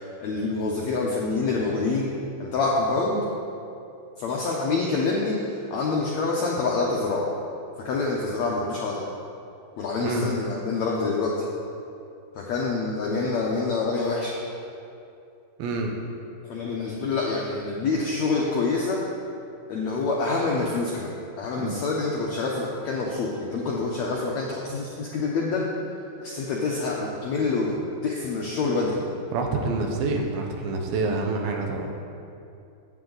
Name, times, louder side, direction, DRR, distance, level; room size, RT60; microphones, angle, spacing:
voice 1, 0.0-2.1 2.4-3.2 4.2-7.2 7.8-9.0 9.8-11.3 12.3-14.4 16.4-19.0 19.7-21.1 21.4-25.7 26.2-27.7 28.0-29.0, left 3 dB, 80° left, -3 dB, 1.6 m, -26 dB
voice 2, 15.6-15.9 21.6-21.8 29.3-31.9, right 3 dB, 75° right, 2 dB, 2.8 m, -27 dB
15.0 x 8.2 x 4.0 m, 2.6 s
omnidirectional pair, 4.5 m